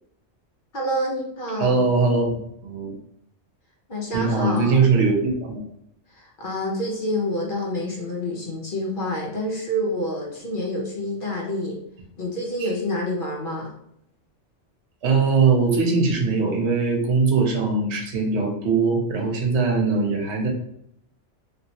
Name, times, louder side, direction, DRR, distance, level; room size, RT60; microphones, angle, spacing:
voice 1, 0.7-1.8 3.9-4.8 6.1-11.8 12.2-13.7, left 1 dB, 50° left, -2 dB, 0.8 m, -28 dB
voice 2, 1.6-2.4 2.6-2.9 4.1-5.6 12.6-12.7 15.0-20.5, right 4 dB, 65° right, 0 dB, 1.0 m, -21 dB
3.0 x 2.8 x 2.8 m, 0.72 s
omnidirectional pair, 1.3 m